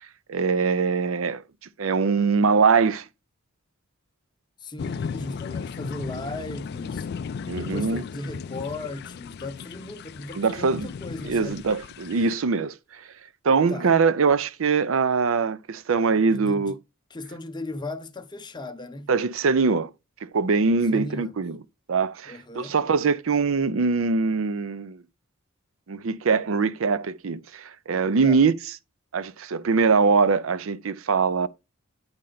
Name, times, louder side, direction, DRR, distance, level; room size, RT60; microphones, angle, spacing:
voice 1, 0.3-1.4 1.8-3.0 7.5-8.0 10.3-10.9 11.2-12.7 13.4-16.7 19.1-19.9 20.2-21.6 21.9-25.0 25.9-28.5 29.1-31.5, right 5 dB, 65° right, 0.5 m, -22 dB
voice 2, 4.6-7.1 7.5-11.7 13.7-13.9 16.3-16.8 17.1-19.1 20.9-21.3 22.3-22.8 28.2-28.4, left 2 dB, 20° left, 0.7 m, -37 dB
sound 1, 4.8-12.4, left 6 dB, 50° left, 0.3 m, -36 dB
8.8 x 4.3 x 3.9 m
head